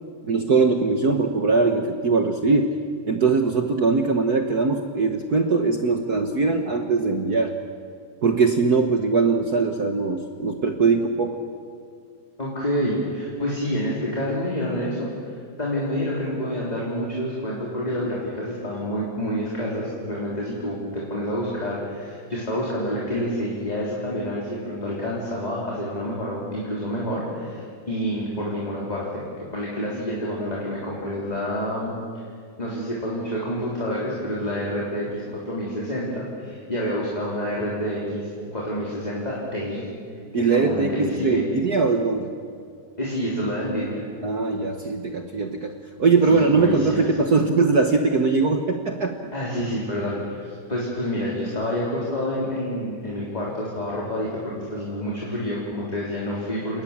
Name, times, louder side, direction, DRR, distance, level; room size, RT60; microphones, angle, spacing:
voice 1, 0.2-2.7 3.0-7.5 8.2-11.4 40.3-42.3 44.2-49.3, right 4 dB, 65° right, 5 dB, 0.9 m, -21 dB
voice 2, 12.4-31.9 32.6-39.8 40.3-41.4 43.0-44.0 46.3-47.1 49.3-56.8, equal, 15° left, -5 dB, 3.7 m, -28 dB
30.0 x 19.0 x 7.3 m, 2.2 s
omnidirectional pair, 3.4 m